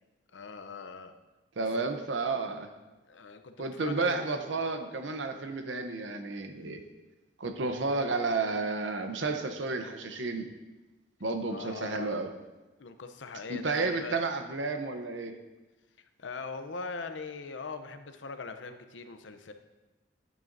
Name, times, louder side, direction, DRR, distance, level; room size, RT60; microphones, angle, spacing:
voice 1, 0.3-1.1 1.6-1.7 3.1-4.7 7.6-7.8 11.5-12.2 12.8-14.2 16.0-19.5, left 4 dB, 85° left, 8 dB, 0.7 m, -42 dB
voice 2, 1.6-2.7 3.6-6.8 7.4-10.5 11.2-12.3 13.5-15.3, right 3 dB, 80° right, 6 dB, 0.8 m, -31 dB
11.5 x 9.0 x 2.7 m, 1.1 s
head